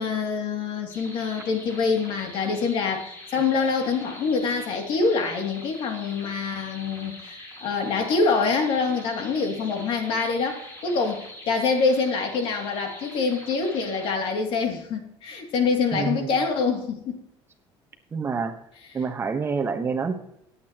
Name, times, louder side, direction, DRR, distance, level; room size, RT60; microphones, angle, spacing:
voice 1, 0.0-17.2, left 4 dB, 60° left, 3 dB, 2.6 m, -25 dB
sound 1, 0.9-14.1, left 1 dB, 25° left, 5.2 m, -43 dB
voice 2, 15.9-16.3 18.1-18.5 18.9-20.1, right 5 dB, 25° right, 5 dB, 1.1 m, -27 dB
19.0 x 8.4 x 3.0 m, 0.78 s
cardioid pair, 140°, 10 cm